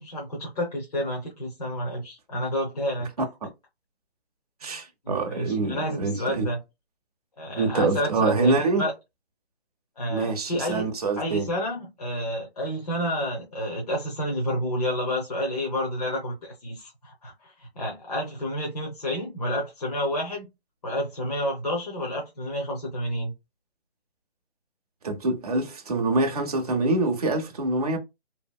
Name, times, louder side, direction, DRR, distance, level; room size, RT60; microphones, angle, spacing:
voice 1, 0.0-3.1 4.6-6.6 7.4-8.9 10.0-10.9 11.2-20.5 20.8-23.3, equal, 35° left, 0.7 m, -30 dB
voice 2, 3.2-3.5 4.6-6.5 7.6-8.9 10.1-11.5 25.0-28.0, right 3 dB, 35° right, 0.5 m, -25 dB
2.8 x 2.5 x 2.2 m
hypercardioid pair, 165°, 32 cm